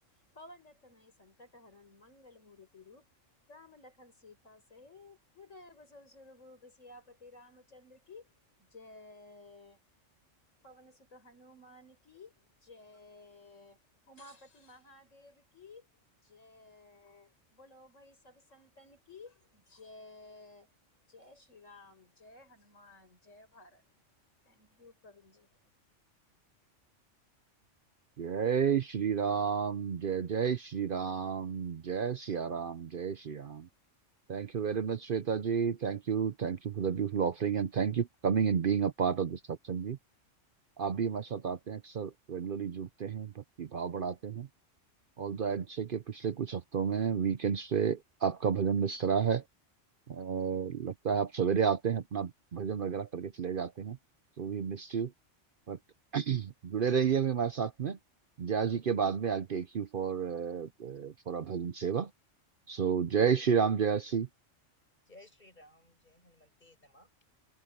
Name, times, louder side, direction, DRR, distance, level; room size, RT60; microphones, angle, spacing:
voice 1, 0.1-3.1 3.5-8.3 8.6-9.8 10.6-13.8 14.1-15.9 16.2-20.7 21.1-23.8 24.4-25.6, left 2 dB, 85° left, 5.8 m, -55 dB
voice 2, 28.2-33.7 34.3-40.0 40.8-44.5 45.2-49.4 50.1-54.0 54.4-55.1 55.7-55.8 56.1-58.0 58.4-62.1 62.7-64.3, right 7 dB, 50° right, 0.8 m, -31 dB
voice 3, 64.7-67.4, left 1 dB, 35° left, 6.8 m, -59 dB
omnidirectional pair, 1.3 m